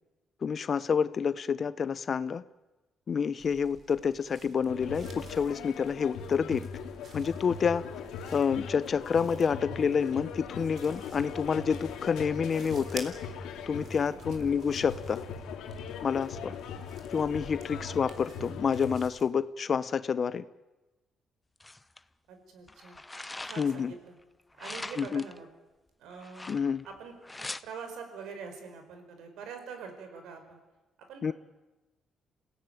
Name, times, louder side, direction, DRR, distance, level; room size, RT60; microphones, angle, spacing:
voice 1, 0.4-2.4 3.1-6.6 7.1-7.8 8.3-13.1 13.7-15.2 16.0-16.5 17.1-20.4 23.6-23.9 25.0-25.2 26.5-26.8 31.2-31.3, left 6 dB, 45° left, 15 dB, 0.8 m, -28 dB
sound 1, 3.4-19.3, right 5 dB, 55° right, 3.7 m, -52 dB
sound 2, 4.7-18.9, left 6 dB, 90° left, 2.6 m, -40 dB
sound 3, 21.6-22.0 22.7-23.9 24.6-25.4 26.2-26.9 27.2-27.6, left 2 dB, 15° left, 0.9 m, -42 dB
voice 2, 22.3-23.0 23.4-24.1 24.6-25.5 26.0-26.5 26.8-27.1 27.6-30.6 31.0-31.3, right 6 dB, 85° right, 6 dB, 5.1 m, -44 dB
27.5 x 17.0 x 9.3 m, 1.1 s
cardioid pair, 90°, 0 cm